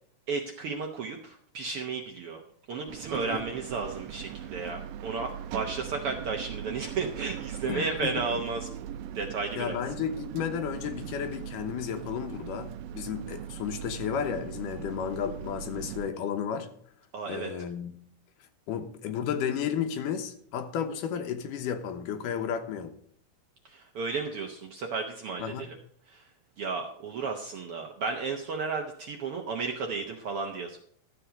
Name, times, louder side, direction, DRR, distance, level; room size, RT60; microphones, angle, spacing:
voice 1, 0.3-2.4 2.7-8.7 9.1-9.8 17.1-17.5 23.7-25.7 26.1-26.2 26.6-30.8, right 4 dB, 65° right, 3 dB, 1.4 m, -33 dB
sound 1, 2.9-16.1, right 10 dB, 85° right, 2.2 m, -40 dB
voice 2, 7.6-8.1 9.6-16.7 17.3-17.9 18.7-22.9 25.4-25.7, left 8 dB, 80° left, 7 dB, 2.6 m, -33 dB
13.0 x 7.6 x 5.1 m, 0.63 s
omnidirectional pair, 3.7 m